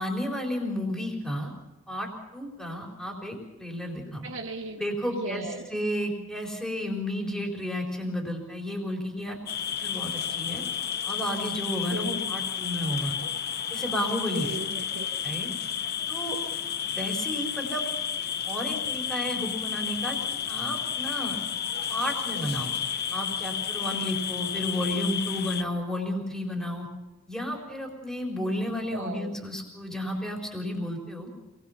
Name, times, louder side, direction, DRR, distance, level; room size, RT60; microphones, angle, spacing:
voice 1, 0.0-1.5 1.9-4.3 4.8-9.4 9.8-10.6 11.0-13.2 13.7-14.5 15.2-15.5 16.1-16.4 16.9-17.8 18.5-21.4 21.9-22.7 23.1-26.9 27.3-31.3, equal, 5° left, 0 dB, 4.3 m, -32 dB
voice 2, 4.2-4.8 5.1-5.7 11.9-12.3 14.3-15.1 28.8-29.3, right 2 dB, 90° right, -1 dB, 1.9 m, -36 dB
sound 1, 9.5-25.6, left 8 dB, 50° left, 0.9 m, -31 dB
27.5 x 20.5 x 5.8 m, 1.1 s
head